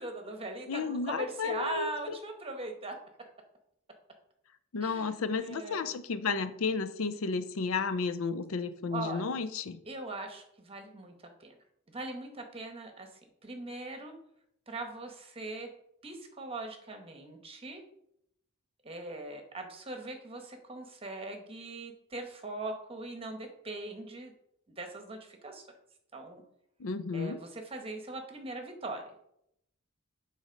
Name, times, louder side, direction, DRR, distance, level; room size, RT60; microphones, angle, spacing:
voice 1, 0.0-2.9 4.8-5.9 8.9-9.2 9.9-11.1 11.4-11.6 11.9-13.1 13.4-14.2 14.7-15.7 16.0-17.8 18.8-24.3 24.8-25.6 26.1-26.4 27.1-29.0, right 2 dB, 25° right, 4 dB, 1.2 m, -40 dB
voice 2, 0.7-2.2 4.7-9.8 26.8-27.4, left 4 dB, 75° left, 13 dB, 0.5 m, -33 dB
7.1 x 4.2 x 5.3 m, 0.75 s
head